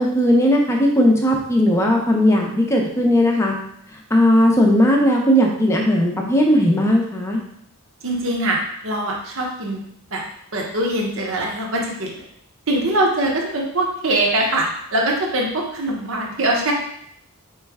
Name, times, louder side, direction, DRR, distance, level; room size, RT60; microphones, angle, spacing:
voice 1, 0.0-3.5 4.1-7.4, equal, 10° left, 0 dB, 0.6 m, -17 dB
voice 2, 8.0-9.8 10.1-10.2 10.5-12.2 12.7-16.7, right 1 dB, 60° right, 0 dB, 0.9 m, -22 dB
4.3 x 3.1 x 3.5 m, 0.70 s
head